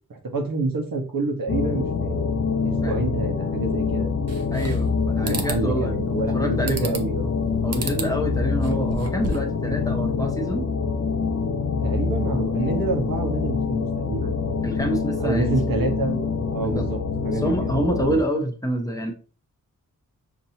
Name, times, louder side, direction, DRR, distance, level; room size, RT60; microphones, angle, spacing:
voice 1, 0.1-2.2 2.6-4.1 5.2-7.3 11.8-14.3 15.2-17.7, right 3 dB, 85° right, 2 dB, 1.1 m, -28 dB
sound 1, 1.5-18.2, left 5 dB, 50° left, 0.6 m, -25 dB
sound 2, 4.3-4.9 5.2-5.6 6.7-7.2 7.7-8.1 8.5-9.6, right 2 dB, 45° right, 0.7 m, -32 dB
voice 2, 4.5-4.9 5.2-5.9 6.3-6.9 7.6-10.6 14.6-15.6 16.6-16.8 17.3-19.1, right 1 dB, 10° left, 2 dB, 0.8 m, -27 dB
5.9 x 2.8 x 2.8 m, 0.38 s
wide cardioid pair, 120°, 33 cm